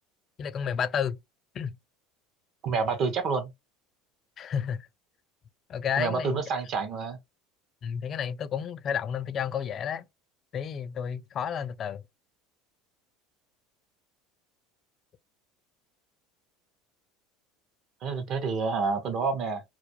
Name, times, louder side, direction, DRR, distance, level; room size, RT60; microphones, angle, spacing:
voice 1, 0.4-1.2 1.5-1.8 4.4-4.9 5.7-6.4 7.8-10.0 10.5-12.0, left 8 dB, 40° left, 0.3 m, -31 dB
voice 2, 2.6-3.5 6.0-7.2 18.0-19.6, right 4 dB, 50° right, 0.6 m, -28 dB
2.2 x 2.1 x 2.8 m
supercardioid pair, 95°, 0 cm